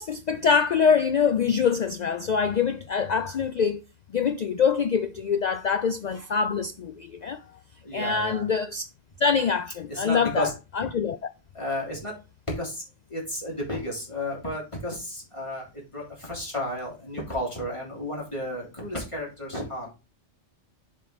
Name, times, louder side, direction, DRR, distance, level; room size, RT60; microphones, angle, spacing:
voice 1, 0.0-3.8 4.1-7.4 7.9-8.9 9.2-10.5 10.7-11.2, left 6 dB, 60° left, 0.4 m, -24 dB
voice 2, 7.8-8.4 9.9-10.5 10.8-10.9 11.5-12.2 12.5-12.8 13.1-19.9, left 1 dB, 25° left, 3.4 m, -32 dB
7.7 x 4.5 x 4.0 m
omnidirectional pair, 1.2 m